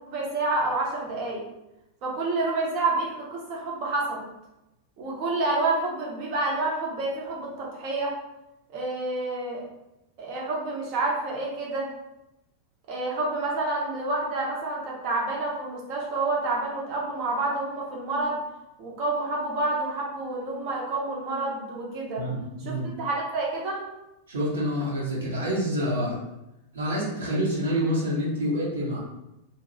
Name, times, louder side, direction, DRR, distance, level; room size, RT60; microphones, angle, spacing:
voice 1, 0.1-1.4 2.0-4.2 5.0-8.1 8.7-9.6 10.2-11.9 12.9-18.4 18.8-22.2 22.6-22.7 23.0-23.8, right 2 dB, 45° right, -3 dB, 0.9 m, -28 dB
voice 2, 22.2-22.8 24.3-26.2 26.7-29.0, equal, 65° right, -5 dB, 1.1 m, -27 dB
2.9 x 2.7 x 2.7 m, 0.92 s
figure-of-eight pair, 90°, 0 cm